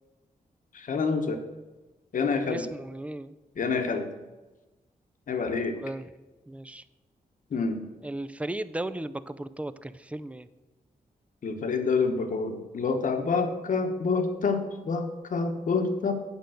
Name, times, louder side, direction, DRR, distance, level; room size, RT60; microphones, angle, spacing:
voice 1, 0.7-1.4 2.1-2.7 3.6-4.1 5.3-5.8 7.5-7.8 11.4-16.1, left 4 dB, 60° left, 6 dB, 1.1 m, -27 dB
voice 2, 2.5-3.3 5.8-6.1 6.5-6.8 8.0-10.5, right 1 dB, 10° right, 14 dB, 0.4 m, -36 dB
9.0 x 5.2 x 7.7 m, 1.1 s
wide cardioid pair, 125°, 15 cm